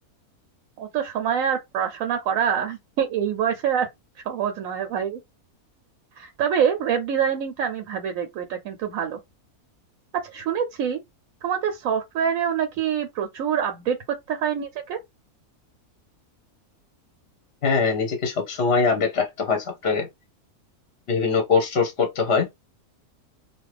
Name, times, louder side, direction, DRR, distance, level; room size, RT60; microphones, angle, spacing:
voice 1, 0.8-3.9 4.2-5.2 6.2-9.2 10.1-11.0 11.4-15.0, right 8 dB, 70° right, 0.9 m, -25 dB
voice 2, 17.6-20.1 21.1-22.5, left 5 dB, 50° left, 0.8 m, -22 dB
2.8 x 2.5 x 3.2 m
omnidirectional pair, 1.6 m